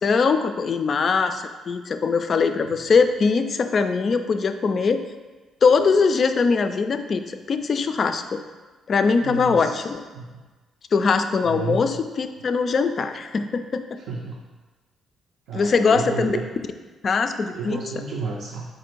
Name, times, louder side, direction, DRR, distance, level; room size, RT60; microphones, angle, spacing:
voice 1, 0.0-5.0 5.6-8.4 8.9-10.0 10.9-13.8 15.5-16.4 17.0-17.8, left 5 dB, 50° left, 8 dB, 0.3 m, -21 dB
voice 2, 9.2-9.9 10.1-10.4 11.4-11.9 14.1-14.4 15.5-16.4 17.5-18.7, right 4 dB, 85° right, -2 dB, 0.5 m, -31 dB
4.5 x 2.5 x 4.5 m, 1.3 s
cardioid pair, 90°, 0 cm